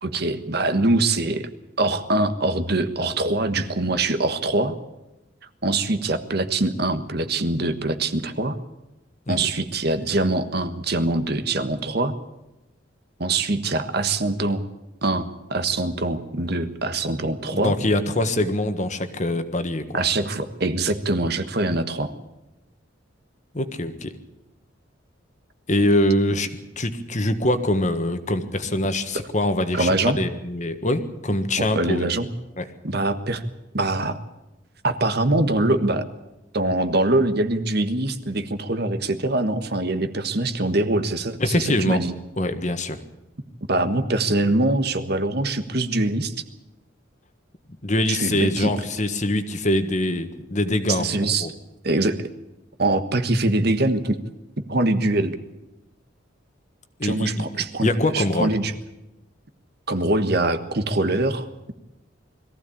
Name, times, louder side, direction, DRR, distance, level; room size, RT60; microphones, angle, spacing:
voice 1, 0.0-1.5 1.8-4.8 5.6-8.6 9.3-12.1 13.2-14.6 15.0-17.7 19.9-22.1 29.7-30.2 31.6-32.3 32.8-33.4 33.7-34.2 34.8-36.1 36.5-42.1 43.7-46.3 48.1-48.7 50.9-51.5 51.8-52.3 52.8-54.2 54.6-55.4 57.0-57.9 58.1-58.7 59.9-61.7, right 2 dB, 55° right, 10 dB, 1.4 m, -23 dB
voice 2, 17.5-20.0 23.5-24.1 25.7-32.0 32.6-32.7 41.4-42.0 42.4-43.0 47.8-51.1 51.4-51.5 57.0-57.5 57.8-58.5, left 1 dB, 40° left, 9 dB, 1.5 m, -23 dB
22.0 x 15.0 x 8.6 m, 0.97 s
head